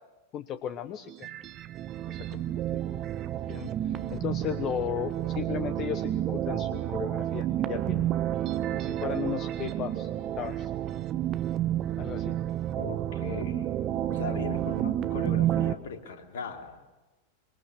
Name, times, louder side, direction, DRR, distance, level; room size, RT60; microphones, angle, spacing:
voice 1, 0.3-1.3 2.1-2.8 3.5-8.0 8.7-10.1 10.4-10.7 12.0-12.4, left 9 dB, 35° left, 11 dB, 1.1 m, -35 dB
sound 1, 1.1-15.7, right 12 dB, 35° right, 1.0 m, -30 dB
voice 2, 12.7-13.8 14.1-16.8, left 5 dB, 60° left, 3 dB, 3.4 m, -39 dB
26.0 x 23.0 x 6.6 m, 1.1 s
figure-of-eight pair, 90°, 0 cm